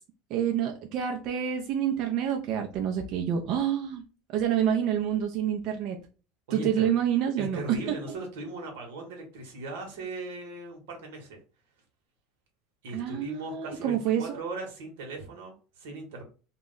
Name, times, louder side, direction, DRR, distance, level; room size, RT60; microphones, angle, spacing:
voice 1, 0.3-4.0 4.3-6.0 6.5-7.6 12.9-14.4, right 9 dB, 55° right, 2 dB, 0.4 m, -28 dB
voice 2, 6.5-6.9 7.4-11.4 12.8-16.2, right 2 dB, 85° right, 1 dB, 0.9 m, -38 dB
2.2 x 2.0 x 3.6 m, 0.36 s
supercardioid pair, 125°, 0 cm